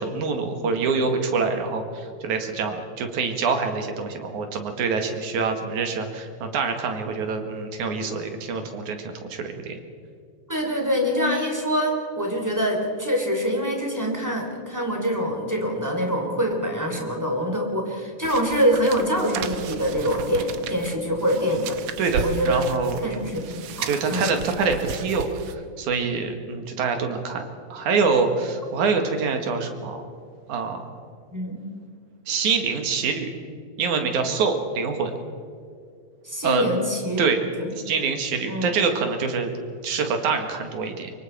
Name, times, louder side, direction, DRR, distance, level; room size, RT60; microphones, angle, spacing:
voice 1, 0.0-9.8 22.0-23.0 23.9-25.3 25.8-27.4 27.7-30.0 30.5-30.9 32.3-33.3 33.8-35.1 36.4-36.6 37.2-37.4 37.7-39.5 39.8-41.1, right 5 dB, 90° right, 5 dB, 3.3 m, -25 dB
voice 2, 10.5-21.8 22.2-22.6 23.0-24.3 31.3-31.6 36.2-37.7 38.5-38.8, equal, 5° right, 1 dB, 2.9 m, -25 dB
sound 1, 18.2-25.5, right 7 dB, 65° right, 1.6 m, -34 dB
24.5 x 23.5 x 4.5 m, 2.3 s
omnidirectional pair, 3.3 m